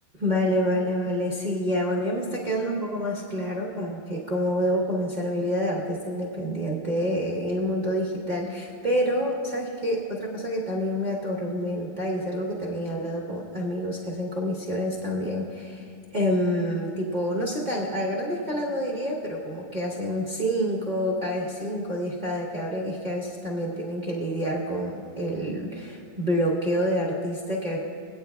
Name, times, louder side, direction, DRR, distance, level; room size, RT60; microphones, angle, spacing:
voice 1, 0.2-27.8, equal, 45° right, -4 dB, 0.6 m, -28 dB
21.5 x 8.9 x 2.3 m, 2.4 s
omnidirectional pair, 2.3 m